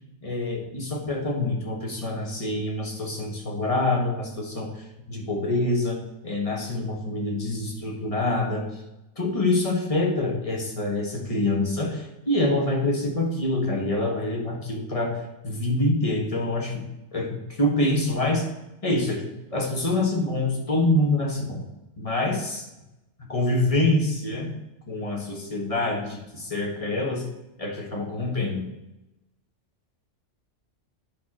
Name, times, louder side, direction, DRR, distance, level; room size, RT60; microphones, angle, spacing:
voice 1, 0.2-5.9 6.2-8.7 9.2-15.1 15.4-16.8 17.1-18.5 18.8-19.2 19.5-21.7 22.0-22.7 23.3-24.5 24.9-27.2 27.6-28.7, left 2 dB, 25° left, 0 dB, 1.7 m, -26 dB
9.5 x 4.3 x 6.2 m, 0.95 s
omnidirectional pair, 1.3 m